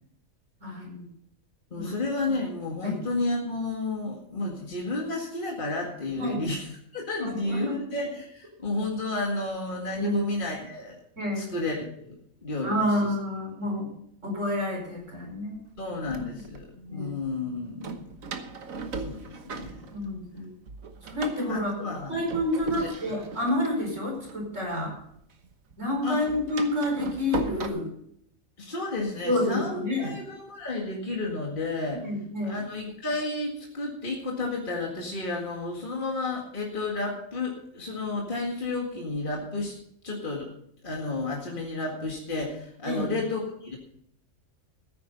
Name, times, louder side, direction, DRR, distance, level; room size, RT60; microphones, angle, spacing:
voice 1, 0.6-1.0 1.7-1.9 2.8-3.0 6.2-6.4 7.2-7.8 10.0-10.2 11.2-11.5 12.6-13.9 14.2-15.6 16.4-16.5 16.7-17.1 19.9-20.5 21.1-21.8 22.1-24.9 25.8-27.9 29.2-30.1 32.0-32.6 42.8-43.1, left 1 dB, 65° right, 1 dB, 5.1 m, -29 dB
voice 2, 1.7-11.0 11.4-13.1 13.6-13.8 15.8-18.1 18.9-19.8 21.5-22.2 22.7-22.9 26.0-26.2 28.6-32.1 32.4-39.8 40.0-40.5 40.8-43.8, left 2 dB, 40° left, -2 dB, 2.2 m, -32 dB
Door, 14.6-14.7 15.5-16.6 17.8-20.4 20.7-25.2 25.4-27.7, right 3 dB, 80° right, 1.7 m, -38 dB
14.0 x 10.5 x 5.4 m, 0.71 s
omnidirectional pair, 1.4 m